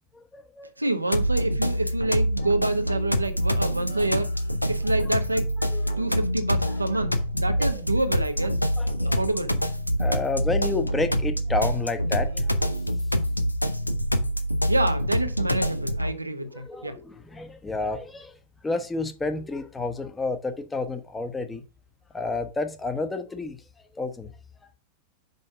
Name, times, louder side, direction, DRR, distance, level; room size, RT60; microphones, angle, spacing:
voice 1, 0.1-0.7 3.9-4.0 5.7-6.0 7.6-7.7 8.8-9.2 10.0-12.8 16.4-18.3 18.6-21.6 22.1-23.6 23.9-24.3, left 3 dB, 10° left, 0.9 m, -30 dB
voice 2, 0.8-4.3 4.7-5.5 6.0-8.6 9.0-9.5 14.7-17.0, right 2 dB, 85° right, 0.8 m, -27 dB
sound 1, 1.1-16.1, equal, 85° left, 0.7 m, -26 dB
5.4 x 5.2 x 5.7 m
figure-of-eight pair, 90°, 0 cm